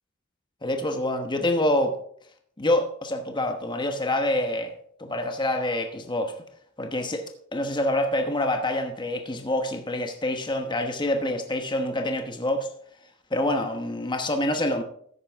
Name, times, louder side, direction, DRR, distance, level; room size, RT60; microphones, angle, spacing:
voice 1, 0.6-1.9 2.6-4.7 5.0-6.3 6.8-7.2 7.5-12.7 13.3-14.8, left 1 dB, 25° left, 1.1 m, -26 dB
13.5 x 9.7 x 3.6 m
head